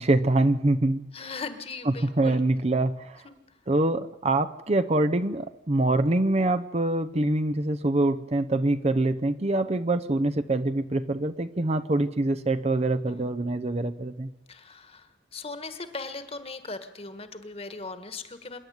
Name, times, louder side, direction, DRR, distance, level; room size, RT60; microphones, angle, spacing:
voice 1, 0.0-1.1 1.9-3.2 3.7-14.3, right 2 dB, 35° right, 10 dB, 0.7 m, -25 dB
voice 2, 1.1-2.4 3.2-3.3 13.1-13.3 14.5-18.6, left 3 dB, 35° left, 10 dB, 1.6 m, -39 dB
26.0 x 11.0 x 9.5 m, 0.97 s
head